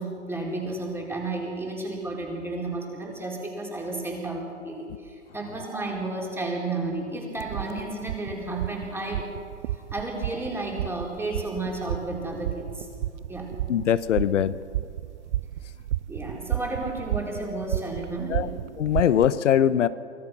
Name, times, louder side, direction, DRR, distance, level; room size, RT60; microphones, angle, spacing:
voice 1, 0.0-9.3 9.9-12.9 13.3-13.5 16.1-18.5, right 2 dB, 5° right, -1 dB, 4.3 m, -32 dB
sound 1, 7.4-19.3, right 14 dB, 70° right, 0.5 m, -33 dB
voice 2, 13.7-14.5 18.3-18.5 18.8-19.9, left 10 dB, 80° left, 15 dB, 0.9 m, -21 dB
25.0 x 17.5 x 6.1 m, 2.2 s
hypercardioid pair, 125°, 36 cm